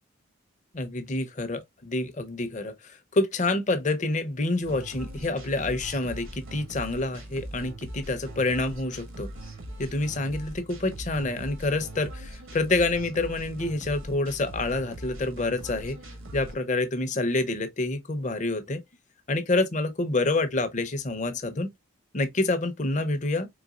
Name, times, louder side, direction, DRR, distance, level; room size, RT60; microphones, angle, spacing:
voice 1, 0.7-9.3 9.8-16.0 16.3-18.8 19.3-21.7 22.1-23.5, left 2 dB, 35° left, 0.6 m, -27 dB
sound 1, 4.6-16.5, right 1 dB, 70° right, 1.2 m, -41 dB
4.0 x 3.4 x 2.3 m
head